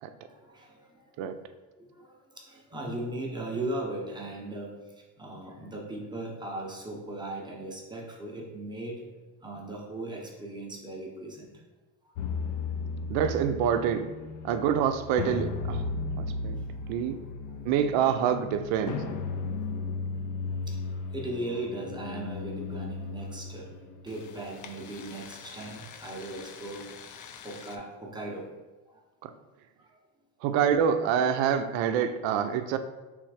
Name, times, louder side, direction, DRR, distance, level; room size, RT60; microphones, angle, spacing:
voice 1, 0.2-1.1 1.8-9.0 9.4-11.5 12.0-12.1 16.7-17.3 17.6-17.8 18.8-19.0 20.5-23.7 24.0-27.0 27.4-28.5 28.9-29.0 29.8-29.9, right 2 dB, 10° right, -2 dB, 0.7 m, -38 dB
sound 1, 12.2-27.8, left 4 dB, 45° left, 0.4 m, -36 dB
voice 2, 13.1-14.1 14.4-15.9 16.2-16.6 16.9-17.2 17.6-19.0 29.2-29.3 30.4-32.8, right 8 dB, 80° right, 10 dB, 0.6 m, -26 dB
3.4 x 3.2 x 4.8 m, 1.2 s
cardioid pair, 130°, 46 cm